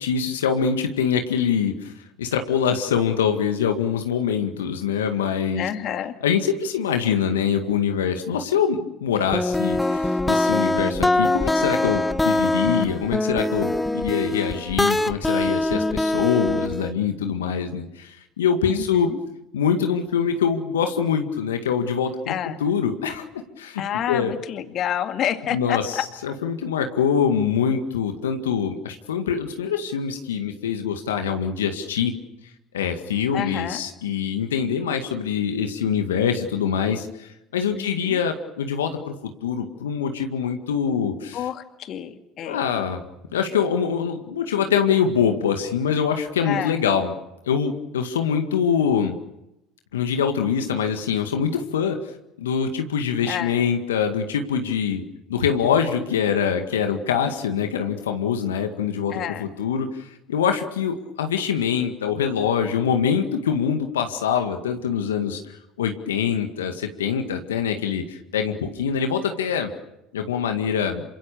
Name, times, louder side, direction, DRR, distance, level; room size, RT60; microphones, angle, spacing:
voice 1, 0.0-1.9 2.2-5.7 6.2-19.1 19.5-22.3 22.6-23.2 23.6-23.8 24.1-24.3 25.5-32.1 32.7-41.4 42.4-43.0 43.3-47.1 47.5-49.2 49.9-52.0 52.4-55.0 55.3-65.4 65.8-69.7 70.1-71.0, left 7 dB, 80° left, 5 dB, 1.9 m, -24 dB
voice 2, 5.6-6.1 18.7-19.2 22.3-22.6 23.8-26.0 33.3-33.8 37.7-38.2 41.3-42.6 46.4-46.8 53.3-53.6 59.1-59.5, left 10 dB, 50° left, 7 dB, 2.2 m, -29 dB
sound 1, 9.3-16.9, left 2 dB, 10° left, 1.3 m, -23 dB
27.5 x 26.0 x 6.9 m, 0.90 s
hypercardioid pair, 70°, 0 cm